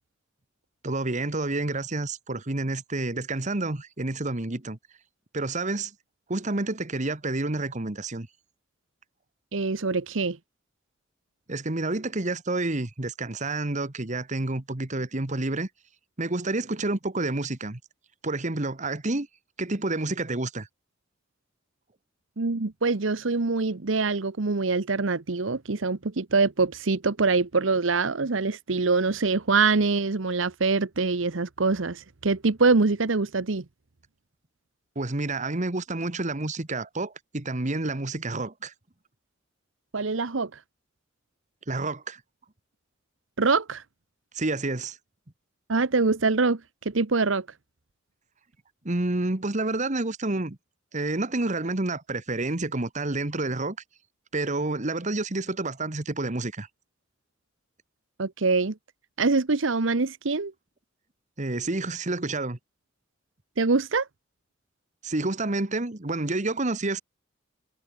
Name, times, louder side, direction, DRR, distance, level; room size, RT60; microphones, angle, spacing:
voice 1, 0.8-4.8 5.3-5.9 6.3-8.3 11.5-15.7 16.2-17.8 18.2-19.3 19.6-20.7 34.9-38.7 41.7-42.2 44.3-45.0 48.8-50.6 50.9-53.8 54.3-56.7 61.4-62.6 65.0-67.0, right 2 dB, 40° right, 1.5 m, -29 dB
voice 2, 9.5-10.4 22.4-33.6 39.9-40.5 43.4-43.8 45.7-47.5 58.2-58.7 59.2-60.5 63.6-64.1, right 4 dB, 75° right, 1.0 m, -24 dB
head